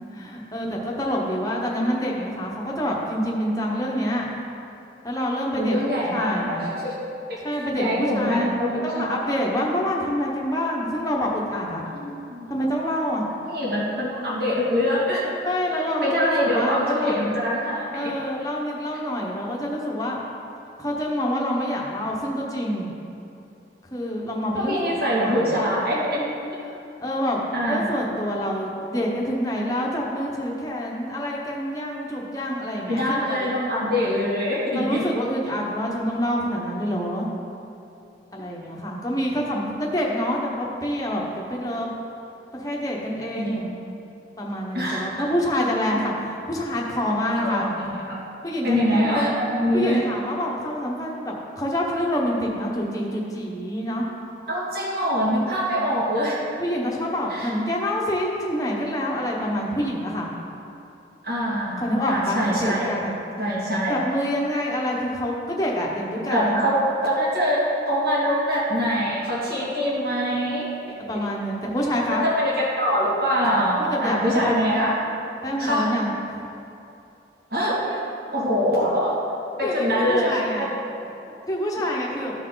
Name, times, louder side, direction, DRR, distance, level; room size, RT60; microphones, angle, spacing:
voice 1, 0.1-4.3 5.0-5.8 6.1-6.6 7.4-8.5 8.8-11.8 12.5-13.3 15.4-17.3 17.9-20.2 20.8-22.9 23.9-25.5 26.7-33.5 34.7-37.3 38.3-41.9 42.5-43.6 44.4-47.7 48.4-49.2 49.7-54.1 56.6-60.3 61.8-63.1 63.9-66.6 71.0-72.2 73.8-74.6 75.4-76.4 77.6-78.0 79.6-80.7 81.5-82.3, equal, 20° left, -2 dB, 1.0 m, -27 dB
voice 2, 5.6-7.0 7.3-7.4 7.8-9.2 11.9-12.5 13.4-15.2 16.0-18.1 24.6-26.2 27.5-27.9 32.9-35.0 43.4-43.7 44.7-45.1 47.4-48.2 48.6-50.0 54.5-56.4 57.3-57.5 61.2-62.9 63.4-64.0 66.3-66.8 67.0-71.2 72.1-75.0 75.6-75.9 77.5-77.8 78.3-79.1 79.6-80.7, equal, 55° right, -6 dB, 2.1 m, -24 dB
14.0 x 4.6 x 3.9 m, 2.7 s
head